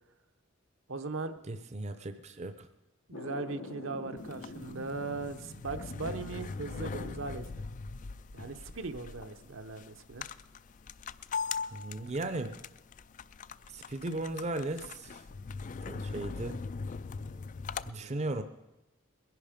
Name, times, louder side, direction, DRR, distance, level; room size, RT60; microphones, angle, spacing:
voice 1, 0.9-1.3 3.1-7.5 8.3-10.3 18.0-18.4, right 3 dB, 70° right, 8 dB, 0.9 m, -39 dB
voice 2, 1.5-2.7 11.7-12.6 13.7-15.2 15.9-16.6 17.9-18.4, right 2 dB, 35° right, 9 dB, 0.7 m, -36 dB
sound 1, 3.1-9.2, left 1 dB, 85° left, 1.3 m, -47 dB
sound 2, 4.2-17.9, left 5 dB, 40° left, 0.4 m, -41 dB
21.5 x 11.0 x 5.1 m, 1.0 s
head